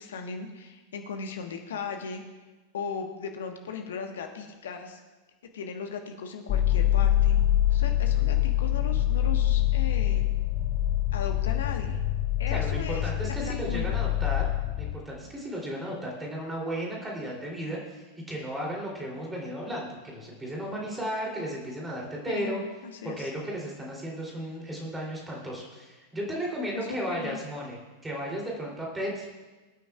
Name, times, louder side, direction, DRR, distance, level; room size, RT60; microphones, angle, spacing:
voice 1, 0.0-2.2 2.7-5.0 5.5-7.4 7.7-10.2 11.1-12.0 12.4-13.8 22.3-23.3 26.7-27.4, left 6 dB, 60° left, 4 dB, 1.4 m, -37 dB
sound 1, 6.5-14.9, left 12 dB, 35° left, 0.9 m, -25 dB
voice 2, 12.5-14.5 14.8-22.6 23.0-29.3, equal, 10° right, -2 dB, 3.3 m, -34 dB
22.0 x 9.1 x 2.5 m, 1.2 s
figure-of-eight pair, 90°, 0 cm